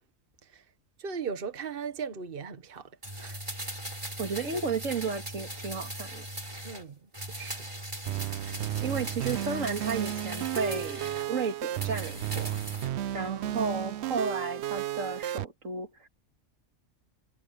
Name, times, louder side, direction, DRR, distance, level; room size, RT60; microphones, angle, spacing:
voice 1, 1.0-3.4 4.5-4.6 6.6-7.9 13.4-13.6, right 6 dB, 45° right, 1.4 m, -39 dB
sound 1, 3.0-6.9 7.1-11.3 11.7-12.9 13.2-13.3, right 1 dB, 25° right, 3.5 m, -39 dB
voice 2, 4.2-6.3 8.4-12.6 13.1-16.1, right 4 dB, 90° right, 2.3 m, -33 dB
sound 2, 8.1-15.5, right 12 dB, 65° right, 0.8 m, -33 dB
omnidirectional pair, 1.3 m